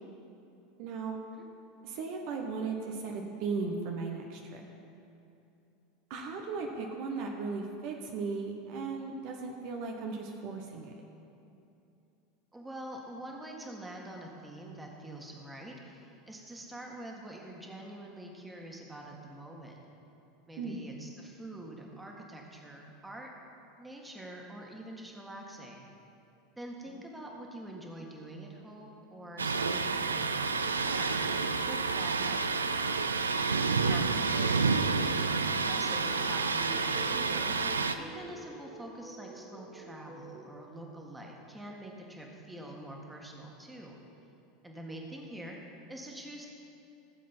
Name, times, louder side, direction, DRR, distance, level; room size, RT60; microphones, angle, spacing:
voice 1, 0.8-1.2 1.8-4.6 6.1-10.9 20.6-20.9, right 4 dB, 55° right, 1 dB, 1.1 m, -36 dB
voice 2, 12.5-19.8 20.5-23.3 23.8-25.9 26.6-32.8 33.9-35.1 35.5-44.0 44.6-46.5, right 1 dB, 10° right, 0 dB, 1.9 m, -45 dB
Thunder, 29.4-37.9, right 4 dB, 90° right, 0.4 m, -29 dB
sound 1, 33.5-40.4, right 1 dB, 35° right, 2.1 m, -48 dB
16.0 x 7.4 x 4.4 m, 2.8 s
hypercardioid pair, 80°, 0 cm